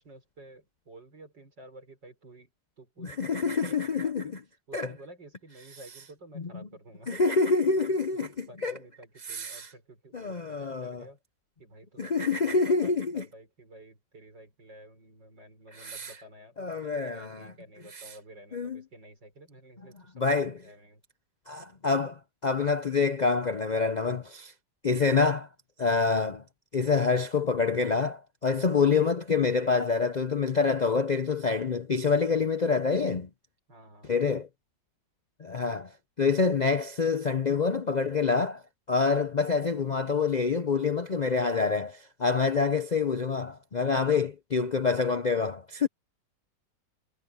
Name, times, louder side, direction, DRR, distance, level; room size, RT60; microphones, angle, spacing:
voice 1, 0.0-2.5 2.8-4.4 4.7-7.2 7.6-11.2 11.6-21.0 33.7-34.2, right 1 dB, 80° right, 6.5 m, -51 dB
voice 2, 3.0-4.4 4.7-4.9 6.4-6.5 7.1-8.3 8.6-8.7 9.3-9.7 10.1-11.0 12.0-13.2 15.8-16.1 16.6-17.5 18.5-18.8 20.2-20.6 21.5-24.5 24.8-25.5 25.8-26.4 26.7-33.3 34.1-34.5 35.4-38.6 38.9-45.9, left 4 dB, 80° left, 0.3 m, -26 dB
omnidirectional pair, 1.9 m